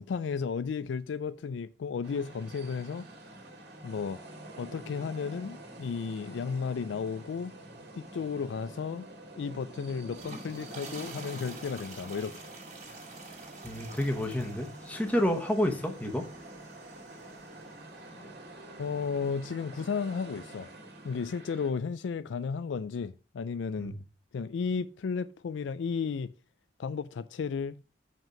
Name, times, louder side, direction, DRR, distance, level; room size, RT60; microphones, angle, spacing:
voice 1, 0.0-3.1 3.8-4.2 4.6-7.5 8.0-9.1 9.4-12.5 18.8-20.7 21.0-24.0 24.3-26.3 26.8-27.8, left 5 dB, 85° left, 0.4 m, -33 dB
sound 1, 2.0-21.7, right 1 dB, 65° right, 2.2 m, -48 dB
sound 2, 10.0-18.3, right 3 dB, 40° right, 2.4 m, -49 dB
voice 2, 13.6-16.3 23.8-24.0, left 1 dB, 10° left, 1.1 m, -29 dB
7.5 x 5.4 x 5.0 m
head